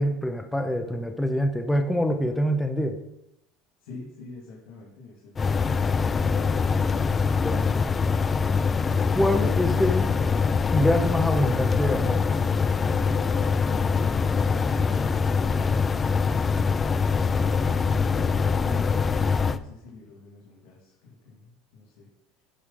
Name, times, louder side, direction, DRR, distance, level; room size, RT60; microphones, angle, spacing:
voice 1, 0.0-3.0 7.3-7.7 9.1-10.1 10.7-12.4, equal, 5° left, 5 dB, 0.8 m, -25 dB
voice 2, 1.9-2.4 3.8-5.6 17.3-22.1, left 3 dB, 85° left, -4 dB, 2.5 m, -46 dB
sound 1, 5.4-19.6, left 5 dB, 20° left, 0.4 m, -23 dB
10.0 x 4.9 x 5.7 m, 0.84 s
cardioid pair, 145°, 0 cm